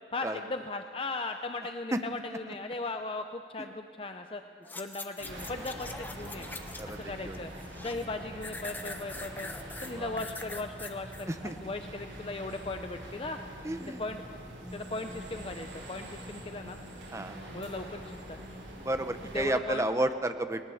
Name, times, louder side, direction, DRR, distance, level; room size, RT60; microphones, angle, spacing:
voice 1, 0.1-4.4 4.8-6.5 6.8-7.5 7.8-9.5 9.8-13.4 14.0-14.4 14.7-16.8 17.5-18.4 19.3-19.8, left 2 dB, 30° left, 6 dB, 0.6 m, -38 dB
sound 1, 4.6-7.0 7.3-8.1 8.4-11.3 11.7-11.8, left 2 dB, 10° left, 0.9 m, -43 dB
sound 2, 5.2-19.5, equal, 90° right, 6.6 m, -44 dB
voice 2, 13.6-14.0 17.1-17.4 18.8-20.6, right 1 dB, 15° right, 8 dB, 0.8 m, -31 dB
19.0 x 19.0 x 7.1 m, 2.2 s
head